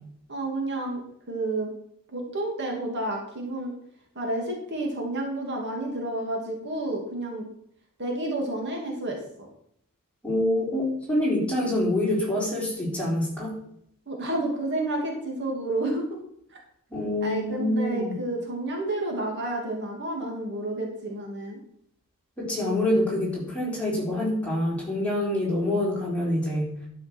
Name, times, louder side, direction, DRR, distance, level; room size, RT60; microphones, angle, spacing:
voice 1, 0.3-1.0 1.3-1.7 2.1-3.7 4.1-7.5 8.0-9.5 14.1-16.1 17.2-21.6, right 1 dB, 55° right, 0 dB, 2.6 m, -30 dB
voice 2, 10.2-13.6 16.9-18.2 22.4-26.7, left 1 dB, 5° left, -5 dB, 4.0 m, -26 dB
12.0 x 5.7 x 6.2 m, 0.72 s
head